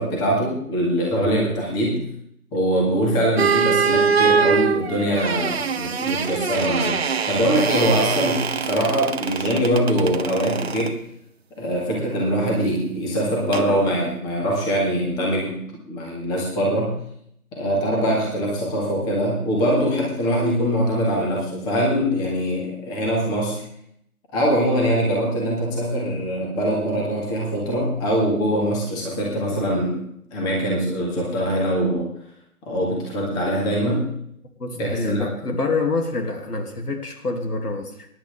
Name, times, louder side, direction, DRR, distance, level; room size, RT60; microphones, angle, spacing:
voice 1, 0.0-2.0 2.5-11.0 11.6-15.6 15.9-16.9 17.5-23.6 24.3-30.0 30.3-32.1 32.6-34.1 34.7-35.3, equal, 10° left, -2 dB, 1.9 m, -23 dB
sound 1, 3.4-10.9 13.5-13.7, right 6 dB, 45° right, 0.9 m, -23 dB
voice 2, 34.6-38.1, left 3 dB, 80° left, 4 dB, 2.9 m, -26 dB
22.5 x 11.0 x 3.6 m, 0.70 s
hypercardioid pair, 165°, 46 cm